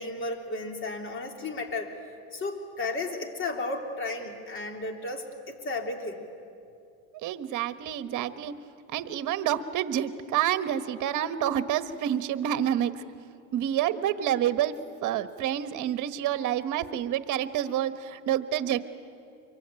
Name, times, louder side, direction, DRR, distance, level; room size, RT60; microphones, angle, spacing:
voice 1, 0.0-1.9 2.3-6.2, left 2 dB, 35° left, 4 dB, 3.2 m, -34 dB
voice 2, 7.1-8.5 8.9-13.0 13.5-14.7 15.0-18.8, right 11 dB, 55° right, 11 dB, 1.4 m, -28 dB
25.0 x 23.0 x 9.0 m, 2.5 s
cardioid pair, 120°, 36 cm